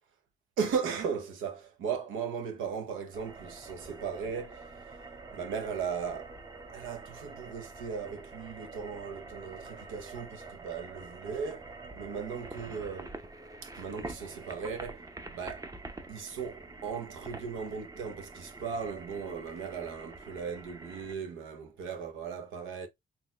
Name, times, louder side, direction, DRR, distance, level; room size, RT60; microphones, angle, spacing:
voice 1, 0.6-4.7 5.3-6.4 6.7-13.1 13.6-15.1 15.3-15.7 16.1-22.9, right 6 dB, 90° right, 1.0 m, -37 dB
sound 1, 3.1-21.1, right 3 dB, 15° right, 0.7 m, -46 dB
4.0 x 3.0 x 2.3 m
cardioid pair, 90°, 20 cm